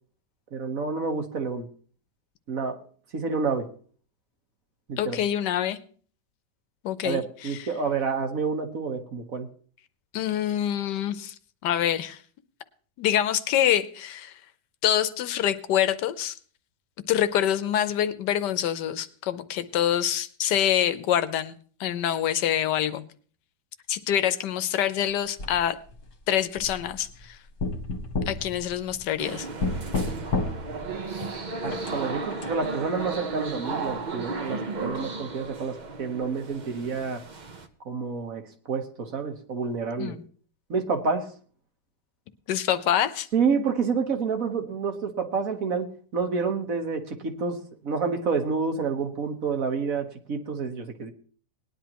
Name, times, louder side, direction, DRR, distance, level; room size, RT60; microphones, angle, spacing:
voice 1, 0.5-1.7 2.5-2.8 3.1-3.7 4.9-5.2 7.0-9.5 31.6-37.2 37.8-38.4 38.7-40.1 40.7-41.3 43.3-51.1, right 5 dB, 55° right, 1.6 m, -29 dB
voice 2, 5.0-5.8 6.8-7.7 10.1-11.3 11.6-12.2 13.0-14.4 14.8-16.4 17.1-23.0 23.9-25.8 26.3-27.4 28.3-29.5 40.0-40.2 42.5-43.3, left 10 dB, 80° left, 1.3 m, -26 dB
sound 1, 25.4-26.0 26.6-27.2 27.6-29.2 29.6-30.9 31.6-32.5, left 3 dB, 50° left, 1.6 m, -31 dB
sound 2, 29.2-37.7, right 3 dB, 40° right, 0.7 m, -34 dB
19.0 x 10.5 x 3.0 m
omnidirectional pair, 1.8 m